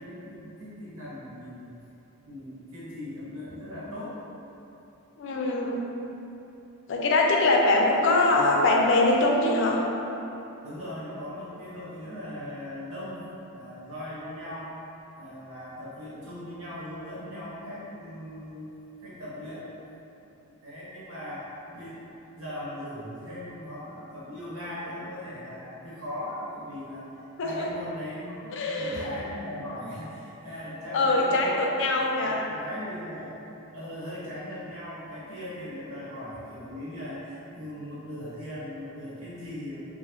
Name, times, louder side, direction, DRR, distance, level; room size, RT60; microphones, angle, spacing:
voice 1, 0.0-1.7 2.2-4.2 10.6-14.7 15.2-18.7 19.0-19.7 20.5-21.5 21.7-21.9 22.4-27.0 27.4-31.5 32.0-33.4 33.7-39.8, left 1 dB, 80° right, -9 dB, 1.0 m, -39 dB
voice 2, 5.2-5.8 6.9-9.8 27.4-27.7 28.5-29.0 30.9-32.4, left 2 dB, 60° left, -1 dB, 0.4 m, -23 dB
3.8 x 2.0 x 2.9 m, 3.0 s
head